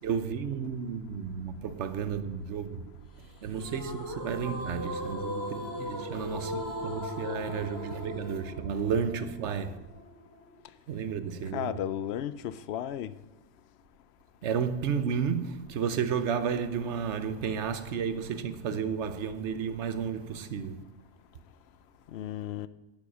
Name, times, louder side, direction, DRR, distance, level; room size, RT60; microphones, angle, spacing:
voice 1, 0.0-2.9 3.4-9.8 10.9-11.7 14.4-20.8, right 7 dB, 75° right, 1.1 m, -32 dB
sound 1, 3.6-10.6, left 1 dB, 15° left, 2.1 m, -38 dB
voice 2, 11.5-13.1 22.1-22.7, left 10 dB, 65° left, 0.8 m, -34 dB
11.0 x 7.7 x 6.1 m
omnidirectional pair, 1.2 m